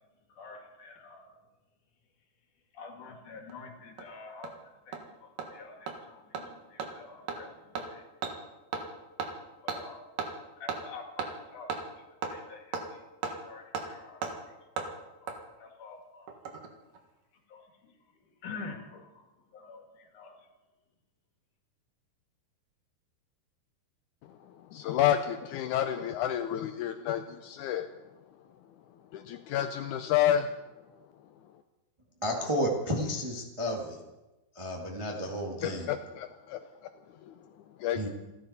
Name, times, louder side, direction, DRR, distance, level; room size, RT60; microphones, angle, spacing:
voice 1, 0.4-1.3 2.7-4.6 4.9-8.0 9.6-10.0 10.6-11.7 12.3-13.0 13.3-14.5 14.8-14.9 15.2-15.3 15.6-16.3 17.5-17.6 18.4-19.2 19.5-20.3, left 4 dB, 60° left, 2 dB, 3.5 m, -47 dB
Hammer, 3.5-3.6 4.0-4.1 4.4-4.5 4.9-5.0 5.4-5.5 5.9-6.0 6.3-6.4 6.8-6.9 7.3-7.4 7.7-7.9 8.2-8.3 8.7-8.9 9.2-9.3 9.7-9.8 10.2-10.3 10.7-10.8 11.2-11.3 11.7-11.8 12.2-12.3 12.7-12.8 13.2-13.3 13.7-13.9 14.2-14.3 14.8-14.9 15.3-15.4 16.3-16.7 16.9-17.0, right 5 dB, 70° right, 3.2 m, -34 dB
voice 2, 24.3-27.9 29.1-30.5 35.6-36.6 37.2-37.3 37.8-38.1, left 10 dB, 80° left, 7 dB, 1.8 m, -30 dB
voice 3, 32.2-34.0 34.5-35.9 37.9-38.1, equal, 15° right, -1 dB, 0.9 m, -32 dB
28.0 x 11.5 x 4.3 m, 1.0 s
omnidirectional pair, 4.2 m